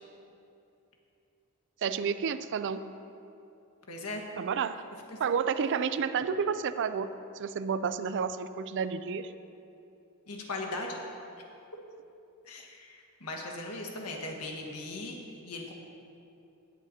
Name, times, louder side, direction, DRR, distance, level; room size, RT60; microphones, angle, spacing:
voice 1, 1.8-2.9 4.4-4.8 5.2-7.1 7.4-9.3, right 6 dB, 55° right, 12 dB, 0.4 m, -30 dB
voice 2, 3.9-4.2 5.1-5.2 10.3-11.0 12.5-15.2 15.4-15.7, left 2 dB, 80° left, 0 dB, 1.5 m, -38 dB
19.0 x 7.4 x 2.8 m, 2.7 s
head